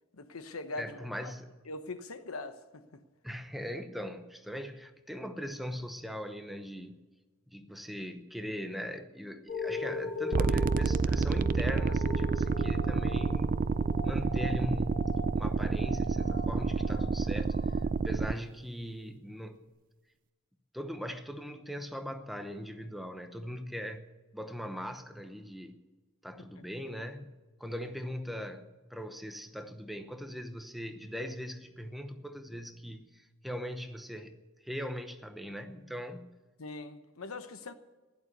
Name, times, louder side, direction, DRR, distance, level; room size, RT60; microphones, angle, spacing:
voice 1, 0.1-1.3 1.7-3.0 26.6-26.7 36.6-37.7, left 3 dB, 75° left, 1.1 m, -42 dB
voice 2, 0.7-1.5 3.2-7.0 7.5-13.6 14.0-15.1 15.4-17.7 18.0-19.7 20.7-25.8 26.2-27.3 27.6-36.3, equal, ahead, 0.8 m, -40 dB
sound 1, 9.5-18.4 19.0-19.1, left 2 dB, 40° left, 2.2 m, -40 dB
sound 2, 10.3-18.3, right 4 dB, 40° right, 0.4 m, -29 dB
15.5 x 11.5 x 6.7 m
head